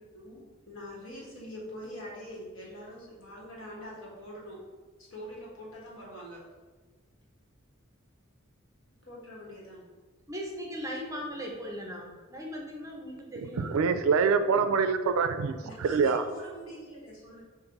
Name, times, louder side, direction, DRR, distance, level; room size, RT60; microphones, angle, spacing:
voice 1, 0.1-4.6 5.0-6.4 9.0-9.8 15.6-17.4, equal, 75° left, -4 dB, 1.5 m, -44 dB
voice 2, 10.3-13.9, equal, 15° right, 0 dB, 0.6 m, -38 dB
voice 3, 13.6-16.2, right 5 dB, 85° right, 10 dB, 0.3 m, -25 dB
5.2 x 2.5 x 3.8 m, 1.4 s
head